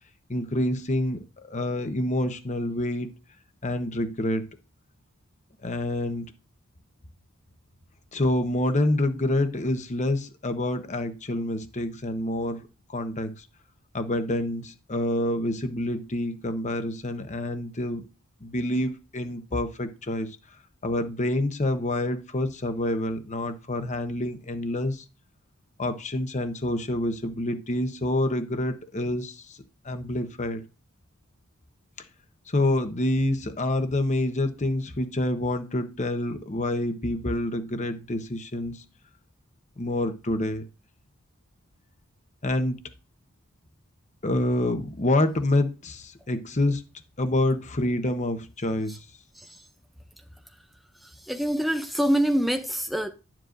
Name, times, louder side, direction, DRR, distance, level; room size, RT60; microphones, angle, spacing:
voice 1, 0.3-1.2 1.5-3.1 3.6-4.5 5.6-6.3 8.1-12.6 12.9-13.5 13.9-18.0 18.4-20.4 20.8-25.0 25.8-29.6 29.8-30.6 32.5-38.8 39.8-40.6 42.4-42.8 44.2-46.8 47.2-49.0, left 1 dB, 35° left, 1.0 m, -27 dB
voice 2, 49.3-49.7 50.9-53.1, equal, ahead, 0.5 m, -26 dB
11.5 x 7.5 x 2.6 m
head